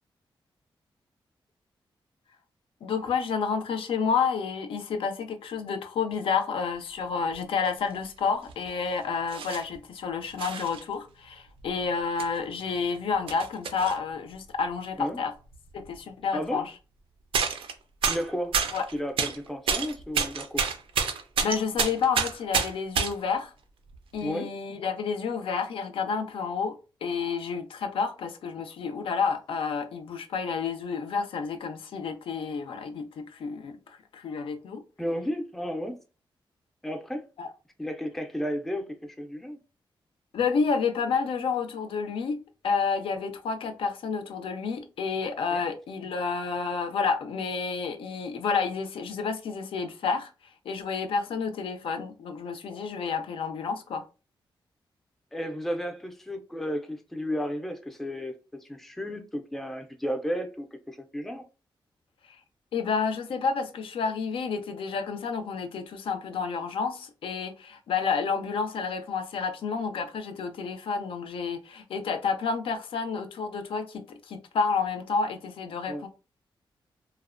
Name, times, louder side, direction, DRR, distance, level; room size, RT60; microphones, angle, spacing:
voice 1, 2.8-15.3 15.7-16.7 18.7-18.9 21.4-23.5 24.1-34.8 37.4-37.5 40.3-50.3 50.7-54.0 62.7-76.1, left 5 dB, 85° left, 0.4 m, -30 dB
sound 1, 7.7-7.8 8.5-8.7 9.3-9.8 10.4-10.8 11.6-11.7 12.2-12.3 12.7-14.0 15.5-15.6 15.8-16.0 17.3-17.7 18.0-19.4 19.7-23.1 23.9-24.2, right 6 dB, 90° right, 0.4 m, -28 dB
voice 2, 18.1-18.6 18.9-20.7 24.2-24.5 35.0-36.0 36.8-37.3 37.8-39.6 45.5-45.6 55.3-58.3 58.6-61.4 75.9-76.1, equal, 5° left, 0.4 m, -33 dB
2.8 x 2.0 x 2.4 m
wide cardioid pair, 120°, 9 cm